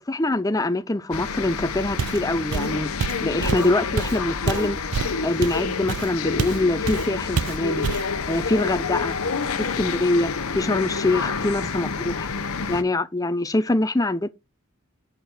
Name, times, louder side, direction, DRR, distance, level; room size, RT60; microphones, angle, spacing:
voice 1, 0.1-2.9 3.2-4.8 5.2-7.9 8.3-9.2 9.6-12.3 12.7-14.3, left 2 dB, 15° left, 0.5 m, -24 dB
sound 1, 1.1-12.8, left 5 dB, 80° left, 0.9 m, -28 dB
Walk footsteps, 2.0-2.3 2.5-6.6 6.9-7.1 7.4-8.1, right 6 dB, 80° right, 0.4 m, -27 dB
6.8 x 5.0 x 5.9 m
head